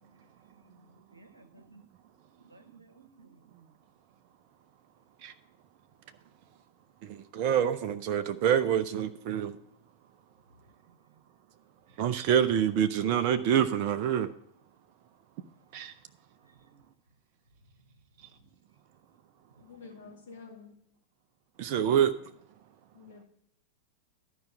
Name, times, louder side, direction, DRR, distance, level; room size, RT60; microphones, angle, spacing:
voice 1, 0.0-1.8 2.4-3.5 16.4-16.8 19.6-19.7, right 2 dB, 80° right, 1.1 m, -59 dB
voice 2, 7.0-9.6 12.0-14.3 15.7-15.9 21.6-22.1, right 9 dB, 45° right, 0.7 m, -26 dB
voice 3, 19.6-20.7 22.9-23.2, left 5 dB, 60° left, 2.5 m, -49 dB
12.0 x 5.1 x 6.6 m
figure-of-eight pair, 90°, 0 cm